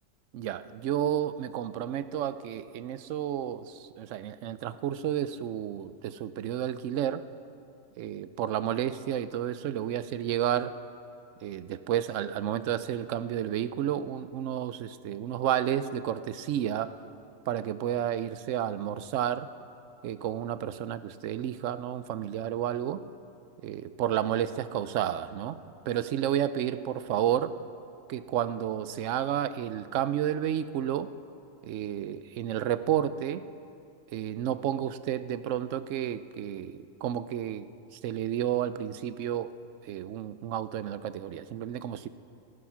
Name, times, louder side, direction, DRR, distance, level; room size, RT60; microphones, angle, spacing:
voice 1, 0.3-7.3 8.0-10.8 11.4-16.9 17.5-19.5 20.0-23.0 23.6-25.6 25.9-27.6 28.1-31.1 31.6-33.5 34.1-39.5 39.9-42.1, right 10 dB, 75° right, 14 dB, 0.9 m, -31 dB
18.0 x 10.0 x 6.0 m, 2.6 s
omnidirectional pair, 1.4 m